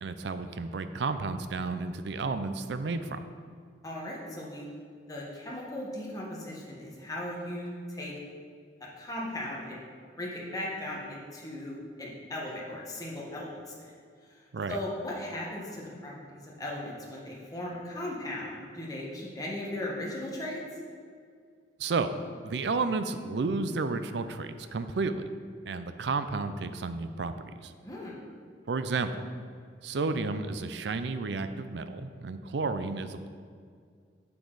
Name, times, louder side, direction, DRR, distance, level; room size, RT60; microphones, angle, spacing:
voice 1, 0.0-3.2 14.5-14.8 21.8-22.1 22.4-25.2 25.7-27.3 27.6-27.7 28.7-29.3 29.8-33.3, right 4 dB, 70° right, 10 dB, 0.5 m, -32 dB
voice 2, 3.8-4.7 5.1-8.1 9.0-9.8 10.2-13.7 14.3-14.4 14.7-20.6 27.8-28.2, left 1 dB, 20° left, -4 dB, 1.4 m, -37 dB
8.2 x 6.9 x 4.0 m, 2.1 s
head